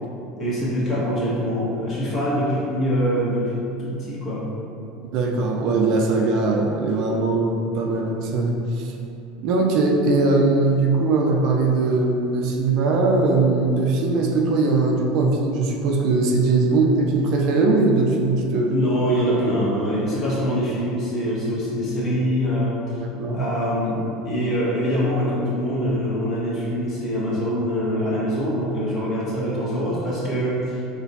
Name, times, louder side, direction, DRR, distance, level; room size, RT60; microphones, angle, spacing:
voice 1, 0.4-4.5 18.7-22.8 23.3-30.8, equal, 40° left, -8 dB, 1.5 m, -24 dB
voice 2, 5.1-8.9 9.4-18.8 23.2-23.4, right 3 dB, 60° right, 0 dB, 0.5 m, -20 dB
4.1 x 3.1 x 2.7 m, 2.8 s
hypercardioid pair, 85°, 0 cm